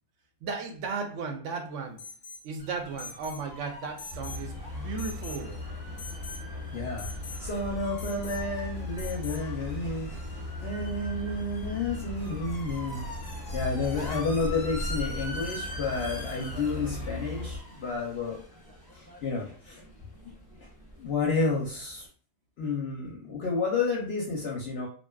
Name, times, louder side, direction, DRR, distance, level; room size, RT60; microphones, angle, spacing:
voice 1, 0.4-2.0 2.4-5.7, right 4 dB, 75° right, 5 dB, 0.9 m, -35 dB
Alarm, 2.0-2.5 3.0-3.4 4.0-4.5 5.0-5.4 6.0-6.4 7.0-7.4 8.0-8.4 9.0-9.4, left 4 dB, 85° left, 0.4 m, -43 dB
sound 1, 2.6-22.1, left 1 dB, 25° left, 0.5 m, -45 dB
sound 2, 4.1-17.6, left 2 dB, 10° right, 0.8 m, -37 dB
voice 2, 6.7-7.1 7.4-10.1 10.6-13.1 13.5-18.4 18.9-19.8 21.0-22.1 22.6-24.9, left 3 dB, 60° left, -2 dB, 0.8 m, -31 dB
2.5 x 2.2 x 2.2 m, 0.41 s
omnidirectional pair, 1.3 m